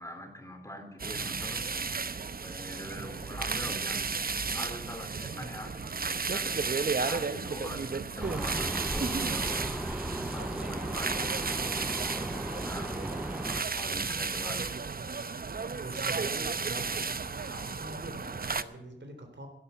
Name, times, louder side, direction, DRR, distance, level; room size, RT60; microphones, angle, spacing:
voice 1, 0.0-1.7 2.4-4.1 4.5-11.5 12.3-13.0 13.6-14.8, left 1 dB, 15° left, 4 dB, 3.4 m, -44 dB
sound 1, 1.0-18.6, right 4 dB, 50° right, 0.7 m, -33 dB
sound 2, 8.2-13.6, right 1 dB, 5° right, 0.5 m, -36 dB
voice 2, 15.8-17.1 17.4-19.5, right 1 dB, 75° right, 4 dB, 3.6 m, -44 dB
12.5 x 11.5 x 8.0 m, 0.82 s
wide cardioid pair, 80°, 19 cm